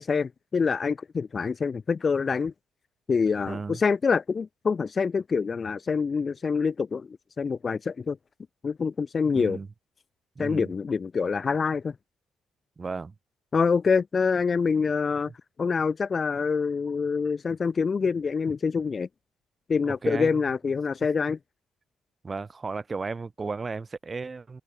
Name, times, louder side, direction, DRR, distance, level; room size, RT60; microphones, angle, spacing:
voice 1, 0.0-2.5 3.1-7.1 7.4-8.2 8.6-9.6 10.4-11.9 13.5-15.3 15.6-19.1 19.7-21.4, left 5 dB, 30° left, 1.5 m, -26 dB
voice 2, 3.4-3.8 9.3-9.7 10.4-10.7 12.8-13.1 19.8-20.4 22.2-24.6, right 4 dB, 25° right, 1.8 m, -34 dB
cardioid pair, 140°, 0 cm